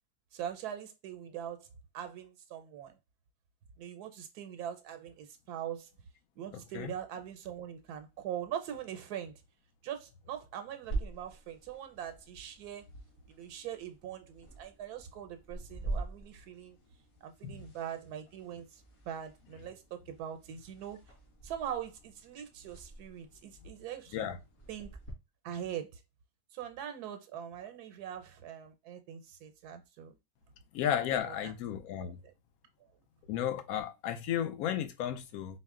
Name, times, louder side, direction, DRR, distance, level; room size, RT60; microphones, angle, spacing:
voice 1, 0.3-1.7 1.9-3.0 3.8-5.9 6.4-9.4 9.8-12.8 13.3-16.8 17.2-21.0 21.4-24.3 24.7-25.0 25.4-26.0 26.5-30.2 31.3-31.5 32.0-32.3, right 10 dB, 80° right, 1.1 m, -42 dB
sound 1, 10.9-25.1, right 2 dB, 50° left, 1.6 m, -45 dB
voice 2, 30.7-32.2 33.3-35.6, left 10 dB, 75° left, 1.1 m, -33 dB
4.3 x 2.1 x 3.6 m
omnidirectional pair, 1.6 m